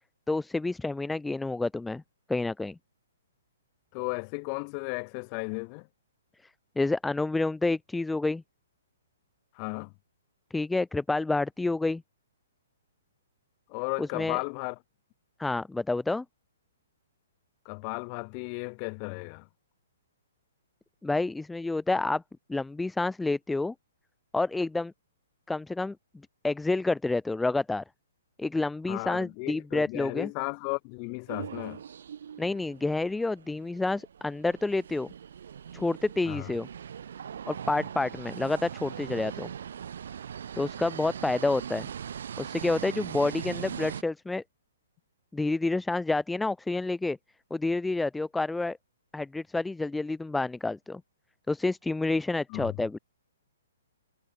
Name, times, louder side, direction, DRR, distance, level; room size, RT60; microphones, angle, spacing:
voice 1, 0.3-2.0 2.3-2.8 6.8-8.4 10.5-12.0 14.0-14.4 15.4-16.2 21.0-22.2 22.5-23.7 24.3-24.9 25.5-26.0 26.4-27.8 28.4-30.3 32.4-35.1 35.7-36.7 37.5-39.5 40.6-41.9 42.4-44.4 45.3-47.2 47.5-48.8 49.1-51.0 51.5-53.0, left 2 dB, 5° left, 0.4 m, -29 dB
voice 2, 3.9-5.9 9.5-9.9 13.7-14.8 17.6-19.5 28.9-31.8 36.3-36.5 52.5-52.8, left 40 dB or more, 30° left, 3.3 m, -35 dB
sound 1, 31.3-44.0, right 8 dB, 65° right, 2.2 m, -40 dB
hypercardioid pair, 155°, 0 cm